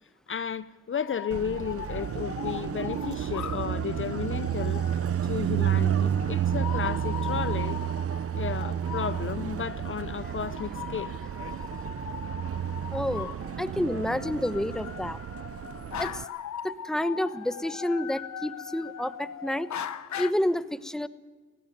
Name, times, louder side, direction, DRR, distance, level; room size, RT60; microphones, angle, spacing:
voice 1, 0.3-4.9 5.2-7.8 8.3-11.2, left 7 dB, 45° left, 0.7 m, -33 dB
sound 1, 0.9-20.3, left 9 dB, 70° left, 1.1 m, -40 dB
Car passing by, 1.3-16.2, right 10 dB, 50° right, 0.6 m, -31 dB
voice 2, 12.9-13.3 13.6-15.2 16.0-16.3 16.6-19.7 20.2-21.1, left 1 dB, ahead, 1.0 m, -29 dB
18.0 x 15.5 x 9.2 m
cardioid pair, 65°, 30 cm